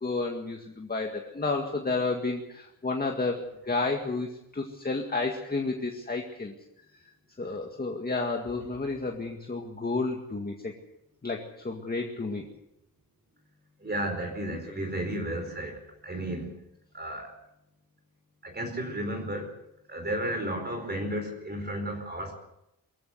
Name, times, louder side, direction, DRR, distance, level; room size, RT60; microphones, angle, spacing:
voice 1, 0.0-6.5 7.4-10.7 11.2-12.5, left 3 dB, 25° left, 1 dB, 2.1 m, -31 dB
voice 2, 13.8-16.5 16.9-17.3 18.4-19.5 19.9-22.4, right 1 dB, 30° right, 4 dB, 4.6 m, -33 dB
23.5 x 15.5 x 8.2 m, 0.84 s
wide cardioid pair, 130°, 36 cm